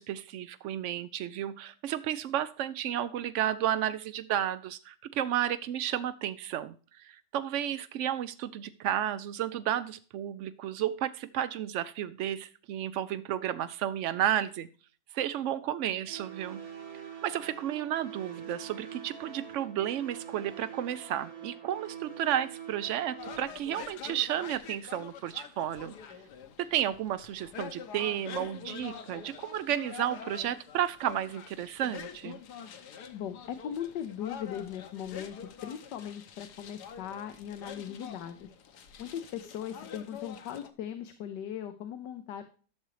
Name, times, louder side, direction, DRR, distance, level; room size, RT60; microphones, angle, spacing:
voice 1, 0.0-14.7 15.1-16.6 16.9-25.9 26.6-32.4, right 11 dB, 80° right, 12 dB, 0.6 m, -32 dB
sound 1, 16.1-23.4, right 8 dB, 60° right, 1.7 m, -44 dB
sound 2, 23.2-40.7, left 8 dB, 75° left, 1.5 m, -46 dB
voice 2, 33.1-35.4 35.6-38.6 39.0-42.4, left 9 dB, 90° left, 9 dB, 1.4 m, -39 dB
11.5 x 6.8 x 3.1 m, 0.38 s
omnidirectional pair, 1.8 m